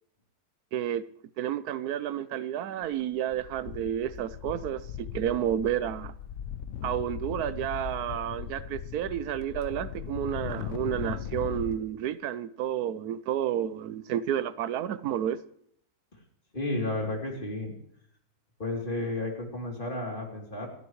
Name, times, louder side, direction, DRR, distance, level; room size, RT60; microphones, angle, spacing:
voice 1, 0.7-1.0 1.4-6.1 6.8-15.4, right 10 dB, 85° right, 1.2 m, -31 dB
sound 1, 2.8-3.0 3.3-11.8, left 9 dB, 60° left, 1.0 m, -38 dB
voice 2, 16.5-17.7 18.6-20.7, left 2 dB, 35° left, 3.3 m, -32 dB
27.0 x 10.5 x 3.1 m
omnidirectional pair, 1.6 m